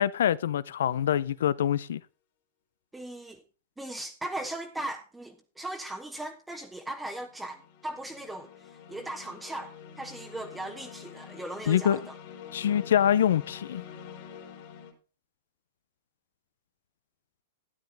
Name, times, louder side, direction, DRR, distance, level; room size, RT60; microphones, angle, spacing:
voice 1, 0.0-2.0 11.7-12.0 12.5-13.8, left 10 dB, 75° left, 0.6 m, -25 dB
sound 1, 0.8-1.2 7.1-14.9, left 7 dB, 55° left, 3.3 m, -47 dB
voice 2, 2.9-3.4 3.8-12.2, right 1 dB, 5° right, 1.1 m, -38 dB
13.0 x 9.1 x 4.0 m
hypercardioid pair, 120°, 0 cm